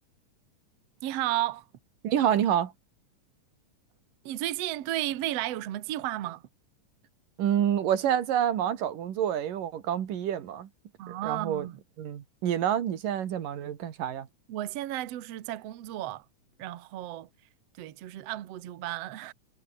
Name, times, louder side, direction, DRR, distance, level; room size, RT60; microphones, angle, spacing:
voice 1, 1.0-1.7 4.2-6.4 11.0-11.8 14.5-16.3 16.6-17.3 17.8-19.3, right 14 dB, 60° right, 2.0 m, -33 dB
voice 2, 2.0-2.7 7.4-10.7 11.1-11.7 12.0-14.3, right 10 dB, 90° right, 3.6 m, -28 dB
omnidirectional pair, 3.7 m